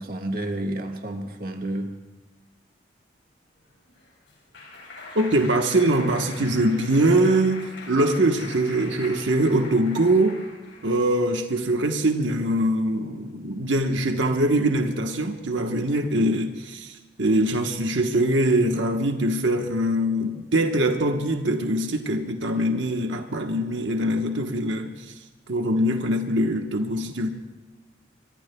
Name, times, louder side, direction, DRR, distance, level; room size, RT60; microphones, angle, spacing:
voice 1, 0.0-1.9 6.4-6.6, right 1 dB, 50° right, 1.6 m, -31 dB
Clapping, 3.7-11.0, left 3 dB, 75° left, 5.1 m, -42 dB
voice 2, 5.1-10.4 10.8-25.1 25.5-27.3, right 1 dB, 85° right, 1.2 m, -23 dB
26.0 x 23.5 x 2.3 m
head